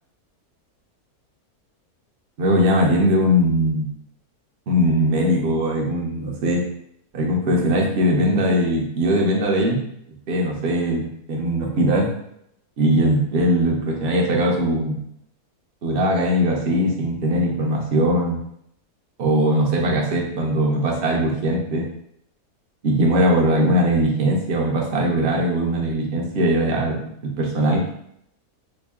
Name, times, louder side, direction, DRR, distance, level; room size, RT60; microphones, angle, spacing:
voice 1, 2.4-3.9 4.7-6.7 7.1-9.8 10.3-12.1 12.8-15.0 15.8-18.4 19.2-21.9 22.8-27.9, equal, 55° right, -1 dB, 0.8 m, -20 dB
3.0 x 2.6 x 3.5 m, 0.73 s
omnidirectional pair, 1.6 m